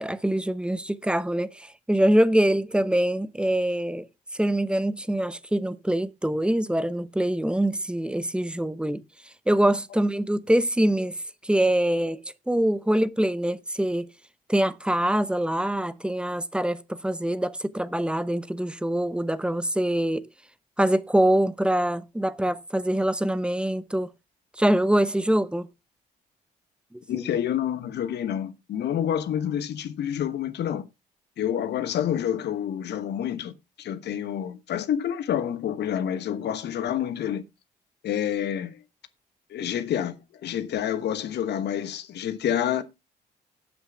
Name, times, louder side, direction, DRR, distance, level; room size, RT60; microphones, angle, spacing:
voice 1, 0.0-4.1 4.3-9.0 9.5-14.1 14.5-20.3 20.8-24.1 24.6-25.7 26.9-27.2, right 1 dB, 5° right, 0.8 m, -24 dB
voice 2, 27.1-30.9 31.4-37.4 38.0-38.8 39.5-42.8, left 10 dB, 55° left, 1.1 m, -28 dB
18.0 x 7.9 x 2.3 m
figure-of-eight pair, 45°, 21 cm